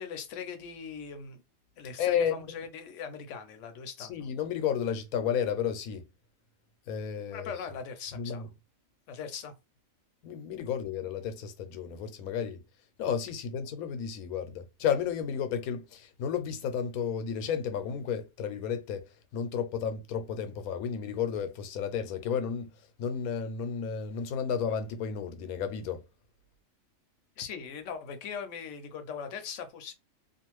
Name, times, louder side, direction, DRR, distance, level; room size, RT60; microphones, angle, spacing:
voice 1, 0.0-1.4 1.8-4.3 7.3-8.4 9.1-9.5 27.4-29.9, left 6 dB, 70° left, 0.9 m, -40 dB
voice 2, 2.0-2.4 4.0-6.1 6.9-7.5 8.1-8.5 10.2-12.6 13.0-22.7 23.0-26.0, left 7 dB, 90° left, 1.1 m, -32 dB
2.5 x 2.4 x 3.0 m
omnidirectional pair, 1.5 m